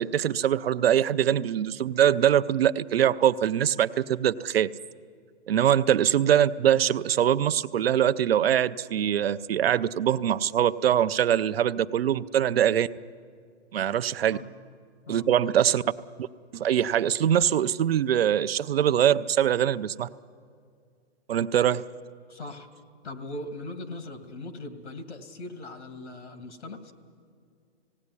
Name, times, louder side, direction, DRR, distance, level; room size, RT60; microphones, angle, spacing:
voice 1, 0.0-4.7 5.5-12.9 13.7-14.4 15.1-15.8 16.5-20.1 21.3-21.9, right 10 dB, 60° right, 13 dB, 0.6 m, -23 dB
voice 2, 22.3-22.7 23.0-26.9, left 2 dB, 90° left, 7 dB, 2.4 m, -40 dB
18.0 x 17.5 x 9.7 m, 2.2 s
hypercardioid pair, 170°, 33 cm